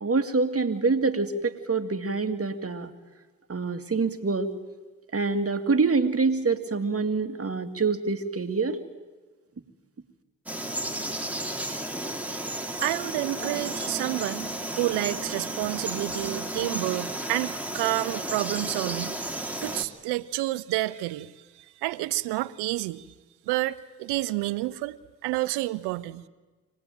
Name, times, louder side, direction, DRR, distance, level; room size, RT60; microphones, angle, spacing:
voice 1, 0.0-2.9 3.5-4.5 5.1-8.8, right 4 dB, 35° right, 8 dB, 2.3 m, -26 dB
Frog, 10.5-19.8, right 1 dB, 5° right, 2.8 m, -33 dB
voice 2, 12.3-23.0 23.5-25.0 25.2-26.3, right 17 dB, 90° right, 16 dB, 0.7 m, -30 dB
25.0 x 18.5 x 9.2 m, 1.3 s
supercardioid pair, 45°, 38 cm